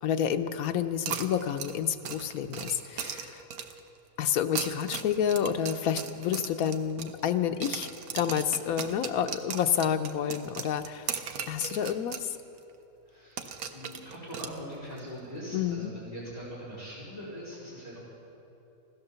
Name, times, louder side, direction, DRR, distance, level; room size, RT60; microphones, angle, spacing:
voice 1, 0.0-3.4 4.2-11.2 11.5-12.4 15.5-15.9, left 9 dB, 80° left, 8 dB, 1.1 m, -29 dB
sound 1, 1.1-3.9 4.4-7.4 7.6-12.3 12.6-12.7 13.4-15.0, right 7 dB, 90° right, 1.3 m, -38 dB
voice 2, 13.1-13.5 13.7-18.0, equal, 25° left, -8 dB, 4.2 m, -42 dB
16.0 x 12.0 x 6.9 m, 2.9 s
omnidirectional pair, 1.5 m